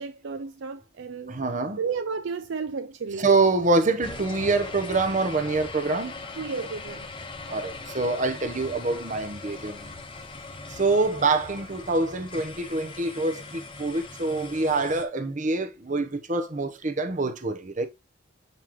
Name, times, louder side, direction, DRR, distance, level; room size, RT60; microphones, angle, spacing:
voice 1, 0.0-1.4 1.8-3.3 6.4-7.1, right 5 dB, 60° right, 0.5 m, -32 dB
voice 2, 1.3-1.8 3.2-6.1 7.5-9.9 10.7-17.9, right 3 dB, 35° right, 0.9 m, -25 dB
sound 1, 4.0-15.0, left 3 dB, 25° left, 1.0 m, -40 dB
7.6 x 5.5 x 3.0 m
head